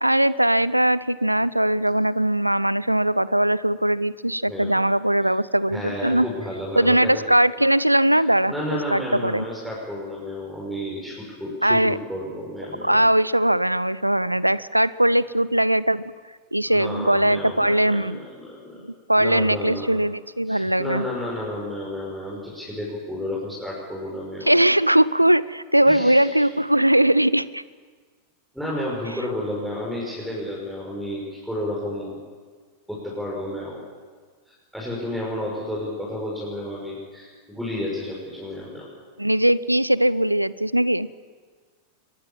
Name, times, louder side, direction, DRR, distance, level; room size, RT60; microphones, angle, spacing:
voice 1, 0.0-6.3 6.8-8.5 8.9-9.5 11.6-12.0 12.8-16.0 16.5-18.2 18.8-21.0 24.4-27.6 39.2-41.1, right 1 dB, 85° right, 19 dB, 0.6 m, -20 dB
voice 2, 5.7-7.2 8.5-13.0 16.6-18.8 19.1-19.9 20.4-24.5 25.8-26.5 28.5-32.2 32.9-33.8 34.5-38.9, left 1 dB, ahead, -4 dB, 6.1 m, -31 dB
23.5 x 21.0 x 7.5 m, 1.5 s
figure-of-eight pair, 90°, 0 cm